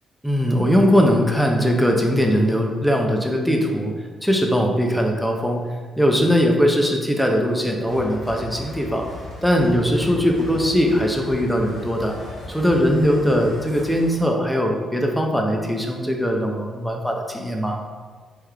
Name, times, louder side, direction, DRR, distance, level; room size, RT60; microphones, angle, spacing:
voice 1, 0.2-3.9 4.2-5.7 6.0-9.1 9.4-12.2 12.5-17.8, equal, 5° left, 1 dB, 0.6 m, -20 dB
sound 1, 7.9-14.2, left 1 dB, 70° left, 1.4 m, -37 dB
3.5 x 3.2 x 3.4 m, 1.5 s
cardioid pair, 80°, 0 cm